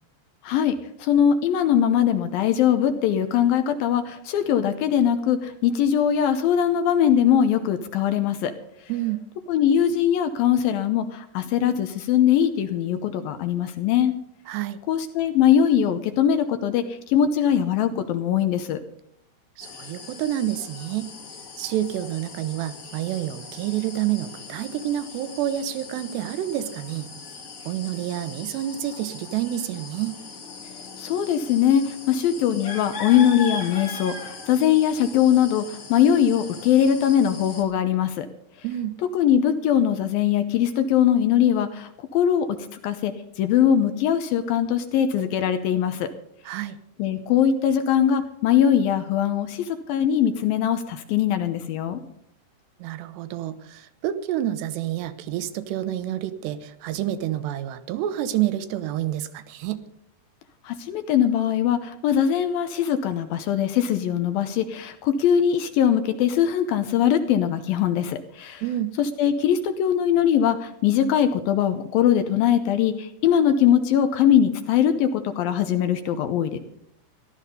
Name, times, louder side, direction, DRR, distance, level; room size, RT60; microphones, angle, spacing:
voice 1, 0.4-8.5 9.5-14.1 14.9-18.8 31.0-38.3 39.1-42.6 42.8-46.1 47.0-52.0 60.6-68.6 69.0-76.6, left 9 dB, 75° left, 9 dB, 2.3 m, -21 dB
voice 2, 8.9-9.2 14.5-14.8 19.6-21.1 21.6-27.1 27.7-30.2 38.6-39.0 46.5-46.8 52.8-59.8 68.6-68.9, right 12 dB, 85° right, 12 dB, 3.0 m, -28 dB
sound 1, 19.6-37.6, left 4 dB, 40° left, 2.3 m, -39 dB
15.0 x 12.5 x 5.5 m, 0.73 s
omnidirectional pair, 4.9 m